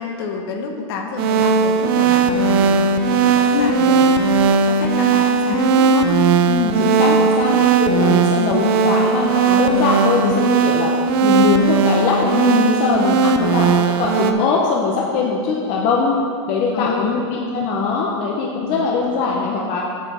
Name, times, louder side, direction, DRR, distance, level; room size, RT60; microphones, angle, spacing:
voice 1, 0.0-4.3 4.6-6.1 7.2-7.6 8.8-9.1 13.4-13.5 16.7-17.3 18.6-18.9, left 5 dB, 55° left, 3 dB, 1.0 m, -29 dB
sound 1, 1.2-14.3, right 5 dB, 50° right, 0.6 m, -17 dB
voice 2, 6.5-10.9 11.2-16.2 16.5-19.9, left 4 dB, 35° left, -1 dB, 0.7 m, -21 dB
8.1 x 5.0 x 6.1 m, 2.2 s
supercardioid pair, 160°, 15 cm